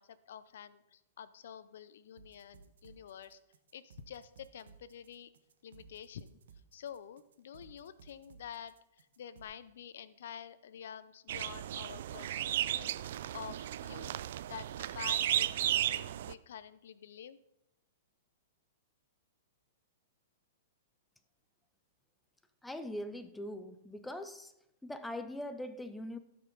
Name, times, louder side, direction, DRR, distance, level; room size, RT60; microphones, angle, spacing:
voice 1, 0.0-3.4 3.7-5.3 5.6-6.4 6.7-14.2 14.5-17.4, left 8 dB, 70° left, 0.5 m, -48 dB
sound 1, 2.2-9.4, right 6 dB, 80° right, 1.2 m, -59 dB
sound 2, 11.3-16.3, right 12 dB, 65° right, 0.4 m, -34 dB
voice 2, 22.6-24.5 24.8-26.2, left 1 dB, 5° left, 0.5 m, -41 dB
16.0 x 5.6 x 3.9 m
hypercardioid pair, 140°, 0 cm